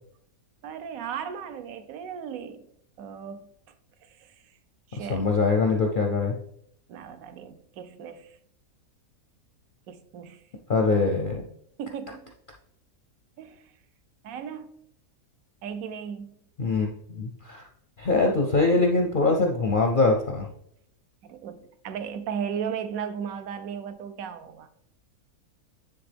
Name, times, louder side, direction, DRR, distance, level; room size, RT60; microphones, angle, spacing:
voice 1, 0.6-2.7 3.0-3.5 4.0-4.3 4.9-5.2 6.9-8.4 9.9-10.4 11.8-12.3 13.4-13.7 14.2-14.7 15.6-16.3 21.2-24.7, right 7 dB, 70° right, 1.0 m, -36 dB
voice 2, 5.1-6.3 10.7-11.4 16.6-17.6 18.0-20.5, left 3 dB, 55° left, 0.5 m, -23 dB
9.5 x 3.4 x 3.4 m
omnidirectional pair, 1.6 m